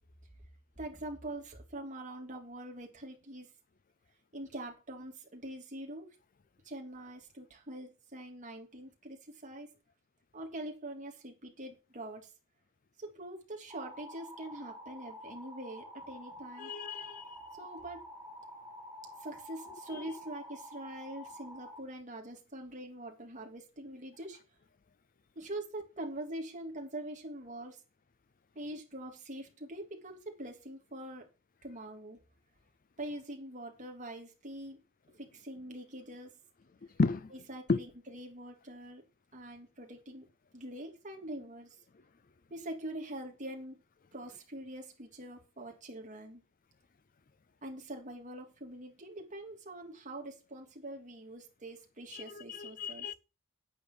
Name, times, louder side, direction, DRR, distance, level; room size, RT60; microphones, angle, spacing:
voice 1, 0.8-3.5 4.3-6.1 6.6-9.7 10.3-12.3 13.0-16.7 17.6-18.1 19.2-24.4 25.3-27.8 28.5-31.3 31.6-32.2 33.0-34.8 35.2-36.3 37.3-39.0 39.3-40.3 40.5-41.8 42.5-43.8 44.1-46.4 47.6-53.1, right 1 dB, 35° right, 3.0 m, -44 dB
sound 1, 13.7-21.8, equal, ahead, 5.5 m, -49 dB
voice 2, 16.6-17.4 19.9-20.0 37.0-37.3 37.7-37.8 52.1-53.1, left 3 dB, 40° left, 0.5 m, -33 dB
9.7 x 8.7 x 6.2 m
head